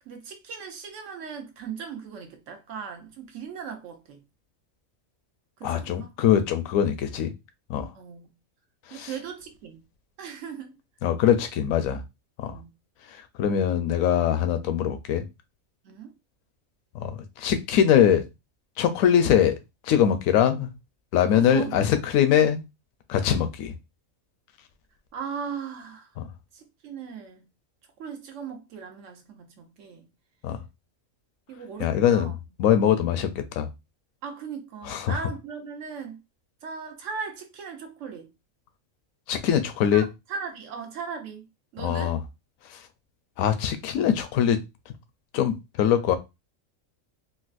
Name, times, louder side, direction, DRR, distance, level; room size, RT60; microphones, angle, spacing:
voice 1, 0.1-4.2 5.6-6.1 7.2-7.3 7.9-8.3 8.9-9.8 10.2-10.8 12.5-12.7 15.8-16.1 21.3-21.9 25.1-26.1 26.5-27.4 28.0-30.1 31.5-32.3 34.2-36.2 36.6-38.3 39.9-41.5 41.7-42.2, right 6 dB, 65° right, 1.1 m, -38 dB
voice 2, 5.6-7.3 7.7-7.9 8.9-9.1 11.0-12.0 12.4-12.6 13.4-15.2 16.9-18.2 18.8-19.6 19.9-20.7 21.1-22.6 23.1-23.7 26.2-26.3 30.4-30.6 31.8-32.3 32.6-33.7 34.9-35.2 39.3-40.0 41.8-42.2 43.4-44.6 45.3-46.2, left 9 dB, 80° left, 1.0 m, -22 dB
3.9 x 2.2 x 2.5 m
omnidirectional pair, 1.4 m